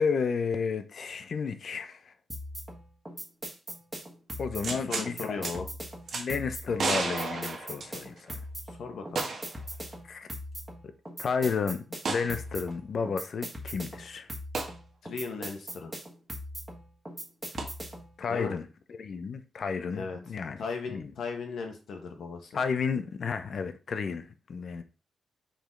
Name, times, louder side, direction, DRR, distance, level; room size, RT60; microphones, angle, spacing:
voice 1, 0.0-2.1 4.4-5.4 6.1-8.4 10.1-10.3 11.2-14.3 18.2-20.6 20.9-21.1 22.5-24.8, left 5 dB, 45° left, 0.7 m, -32 dB
sound 1, 2.3-18.2, equal, 10° right, 1.4 m, -41 dB
sound 2, 4.6-5.1 5.4-5.5 6.1-6.2 6.8-8.3 9.2-9.6 9.9-10.0 12.0-12.3 14.5-14.7 17.6-17.7, right 4 dB, 45° right, 1.4 m, -32 dB
voice 2, 4.7-5.7 8.7-9.3 15.0-15.9 18.3-18.5 19.9-20.2 20.6-22.6, left 4 dB, 65° left, 1.4 m, -37 dB
5.2 x 4.9 x 3.8 m
wide cardioid pair, 180°, 0 cm